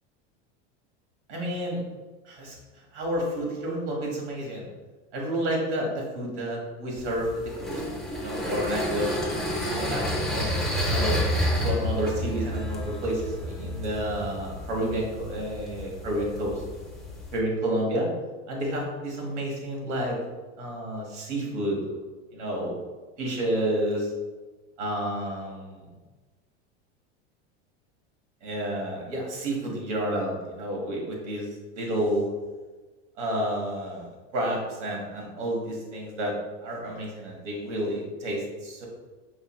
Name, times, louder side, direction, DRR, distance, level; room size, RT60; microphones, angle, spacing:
voice 1, 1.3-1.8 2.2-2.5 2.9-4.7 5.1-7.8 8.2-11.2 11.6-16.6 17.3-18.1 18.5-20.2 20.6-21.8 22.3-22.8 23.2-24.1 24.8-25.8 28.4-31.5 31.8-32.3 33.2-36.3 36.6-38.9, right 1 dB, 85° right, -2 dB, 1.4 m, -30 dB
sound 1, 7.0-17.4, equal, ahead, 0.6 m, -30 dB
5.0 x 3.0 x 2.2 m, 1.3 s
supercardioid pair, 115°, 34 cm